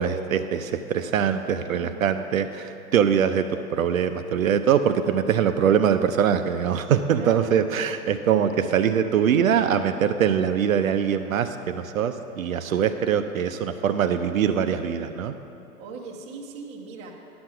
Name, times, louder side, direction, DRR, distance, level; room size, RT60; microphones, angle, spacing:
voice 1, 0.0-15.3, right 8 dB, 65° right, 8 dB, 0.5 m, -23 dB
voice 2, 1.2-2.2 7.2-7.5 12.7-12.8 15.8-17.1, right 4 dB, 15° right, -1 dB, 0.7 m, -40 dB
10.5 x 6.1 x 5.6 m, 2.8 s
hypercardioid pair, 130°, 45 cm